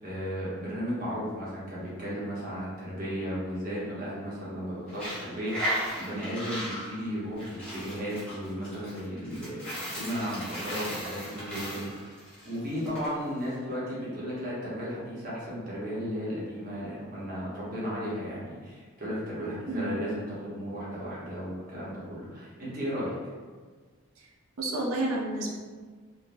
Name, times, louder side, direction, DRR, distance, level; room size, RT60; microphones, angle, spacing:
voice 1, 0.0-12.1 12.4-23.1, equal, 40° right, -7 dB, 0.8 m, -35 dB
Coin (dropping), 4.9-13.1, equal, 5° left, 0.8 m, -36 dB
voice 2, 19.7-20.0 24.2-24.3 24.6-25.5, right 1 dB, 75° right, -2 dB, 0.5 m, -30 dB
3.3 x 2.1 x 2.5 m, 1.5 s
head